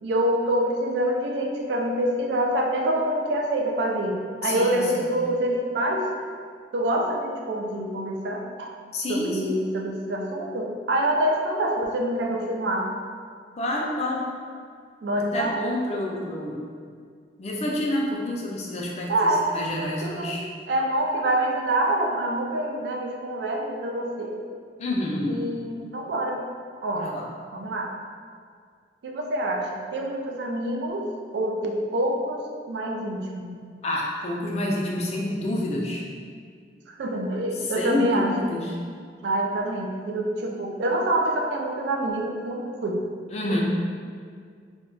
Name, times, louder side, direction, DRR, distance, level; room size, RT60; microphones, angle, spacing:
voice 1, 0.0-6.1 6.7-8.7 9.1-12.9 15.0-15.6 19.1-19.5 20.0-20.4 20.7-24.4 25.3-26.4 26.8-27.1 27.5-27.9 29.0-33.5 36.9-38.3 39.2-43.0 43.5-43.6, right 1 dB, 65° right, 1 dB, 0.3 m, -26 dB
voice 2, 4.4-5.1 8.9-9.6 13.6-14.3 15.2-16.7 17.4-19.1 19.5-20.4 24.8-25.4 27.0-27.2 33.8-36.0 37.8-38.8 43.3-43.6, left 1 dB, 35° left, -3 dB, 0.4 m, -28 dB
2.2 x 2.2 x 3.7 m, 2.1 s
head